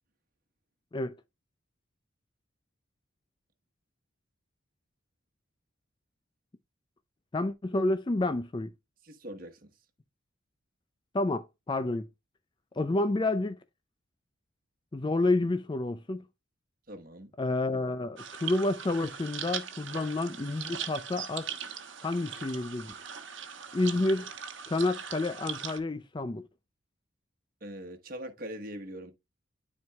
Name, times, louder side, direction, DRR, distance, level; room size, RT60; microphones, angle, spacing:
voice 1, 7.3-8.7 11.1-12.1 12.8-13.6 14.9-16.2 17.4-21.5 22.0-22.9 23.7-24.3 24.7-26.4, left 2 dB, 25° left, 0.4 m, -29 dB
voice 2, 9.0-9.7 16.9-17.3 27.6-29.1, equal, 45° right, 1.2 m, -42 dB
sound 1, 18.2-25.8, right 8 dB, 65° right, 1.1 m, -40 dB
12.5 x 4.6 x 2.3 m
head